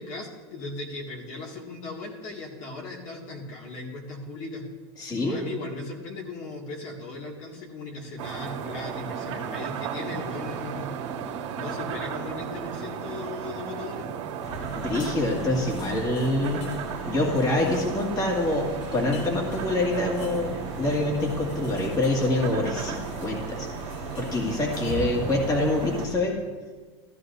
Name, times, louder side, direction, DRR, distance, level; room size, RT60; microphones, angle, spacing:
voice 1, 0.0-4.6 5.2-11.0 11.5-14.1 24.7-25.3, left 2 dB, 50° left, -1 dB, 2.1 m, -37 dB
voice 2, 5.0-5.4 14.7-16.7 17.0-23.7 24.2-26.4, left 2 dB, 25° left, -1 dB, 2.1 m, -26 dB
sound 1, 8.2-26.1, right 7 dB, 85° right, 1.5 m, -35 dB
sound 2, 14.4-26.2, equal, 90° left, 1.8 m, -38 dB
14.5 x 12.5 x 2.6 m, 1.4 s
supercardioid pair, 125°, 15 cm